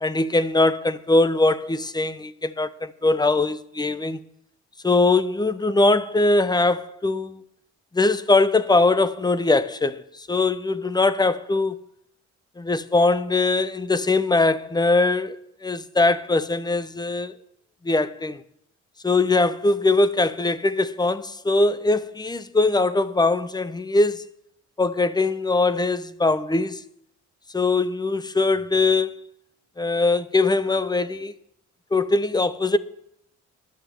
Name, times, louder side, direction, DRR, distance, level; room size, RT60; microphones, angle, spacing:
voice 1, 0.0-4.2 4.8-7.4 7.9-11.8 12.6-15.4 15.6-17.3 17.8-18.4 19.0-24.3 24.8-26.8 27.5-29.2 29.8-31.3 31.9-32.8, left 3 dB, 15° left, 0.6 m, -21 dB
11.5 x 6.7 x 7.5 m
cardioid pair, 90°, 30 cm